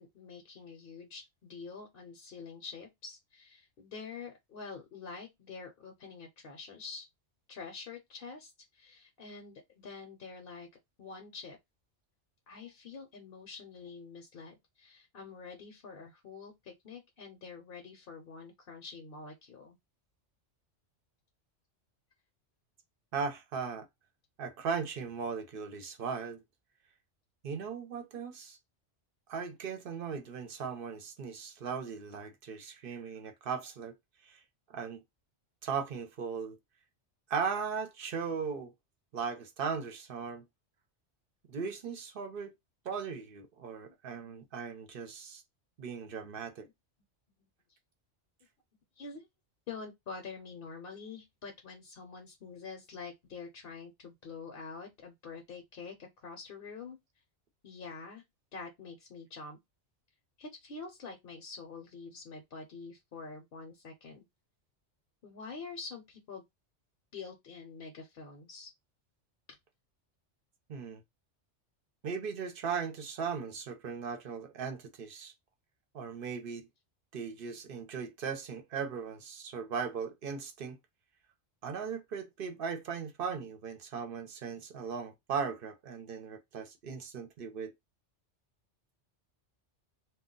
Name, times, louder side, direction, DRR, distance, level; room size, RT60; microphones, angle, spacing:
voice 1, 0.0-7.1 7.5-10.7 11.0-11.6 12.5-19.8 43.8-43.9 44.3-44.5 49.0-49.3 49.7-57.0 57.6-58.2 58.5-59.6 60.4-64.2 65.2-66.4 67.1-68.7, left 4 dB, 55° left, 0.8 m, -46 dB
voice 2, 23.1-23.9 24.4-26.4 27.4-28.6 29.3-33.9 34.2-34.4 34.7-35.0 35.6-36.6 37.3-38.7 39.1-40.4 41.5-42.5 42.8-45.4 45.8-46.7 70.7-71.0 72.0-75.3 75.9-76.7 77.1-80.8 81.6-87.7, right 6 dB, 55° right, 0.8 m, -38 dB
2.3 x 2.2 x 3.7 m
omnidirectional pair, 1.2 m